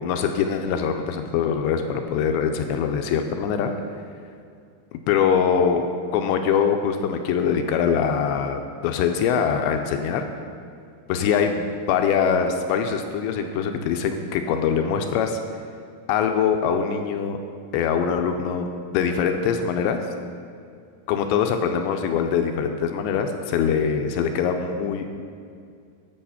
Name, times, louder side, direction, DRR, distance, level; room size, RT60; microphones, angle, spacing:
voice 1, 0.0-3.7 5.1-5.9 6.1-10.2 11.1-15.4 16.1-17.4 17.7-20.0 21.1-25.1, left 7 dB, 80° left, 5 dB, 2.6 m, -23 dB
11.0 x 7.4 x 5.7 m, 2.3 s
omnidirectional pair, 5.5 m